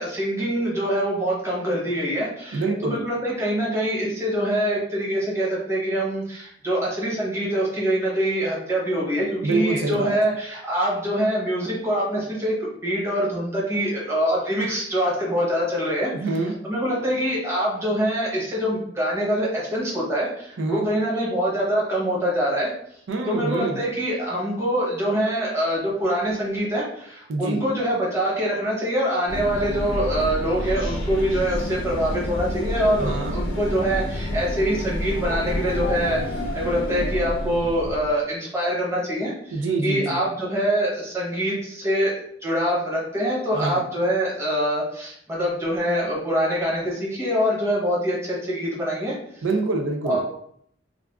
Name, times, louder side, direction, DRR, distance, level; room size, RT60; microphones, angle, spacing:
voice 1, 0.0-12.5 12.8-16.1 16.7-22.7 23.3-36.2 36.5-49.1 50.0-50.2, equal, 15° right, -5 dB, 0.9 m, -24 dB
voice 2, 2.5-3.0 9.4-10.1 16.1-16.6 20.6-20.9 23.1-23.8 27.3-27.6 33.0-33.3 39.5-40.2 43.5-43.8 49.4-50.2, right 3 dB, 90° right, 2 dB, 0.5 m, -25 dB
sound 1, 29.3-38.2, left 1 dB, 85° left, 0.6 m, -29 dB
2.5 x 2.3 x 3.4 m, 0.67 s
head